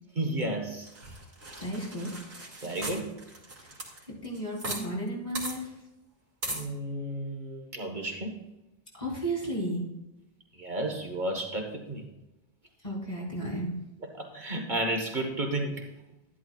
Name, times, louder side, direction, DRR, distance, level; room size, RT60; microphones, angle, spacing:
voice 1, 0.1-0.9 2.6-3.2 6.4-8.4 10.5-12.1 14.0-15.9, right 1 dB, 50° right, 2 dB, 1.5 m, -32 dB
sound 1, 0.9-4.8 5.1-5.2 5.4-5.6 6.4-6.7, right 2 dB, 85° right, 2.3 m, -38 dB
voice 2, 1.6-2.1 4.2-5.7 9.0-9.8 12.8-13.7, right 1 dB, 45° left, -6 dB, 3.9 m, -33 dB
12.5 x 11.5 x 2.4 m, 0.95 s
omnidirectional pair, 1.0 m